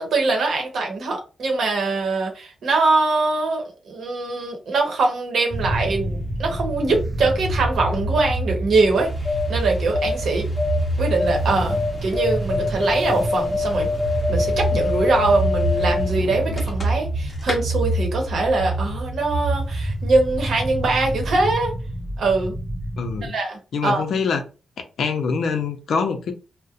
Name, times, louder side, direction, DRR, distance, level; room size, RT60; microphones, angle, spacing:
voice 1, 0.0-10.5 11.0-13.9 14.3-21.7 22.2-22.5 23.2-24.0, right 3 dB, 70° right, 0.8 m, -23 dB
sound 1, 5.5-23.3, right 1 dB, 30° right, 0.4 m, -27 dB
sound 2, 8.9-17.1 17.4-17.6, left 3 dB, 30° left, 0.6 m, -26 dB
voice 2, 23.0-23.3 23.7-24.4 25.0-26.3, left 5 dB, 70° left, 0.5 m, -24 dB
2.4 x 2.1 x 2.7 m
wide cardioid pair, 135°, 0 cm